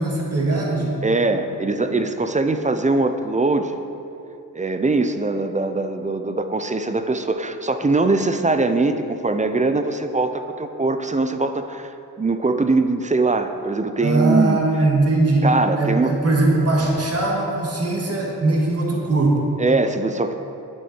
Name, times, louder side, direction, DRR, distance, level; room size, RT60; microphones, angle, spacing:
voice 1, 0.0-1.0 14.0-15.5 15.8-19.4, right 2 dB, 40° right, -2 dB, 1.8 m, -20 dB
voice 2, 1.0-3.7 4.5-11.9 12.2-14.6 15.4-16.1 19.6-20.3, right 3 dB, 20° right, 8 dB, 0.4 m, -21 dB
8.4 x 7.2 x 4.3 m, 2.8 s
cardioid pair, 70°, 38 cm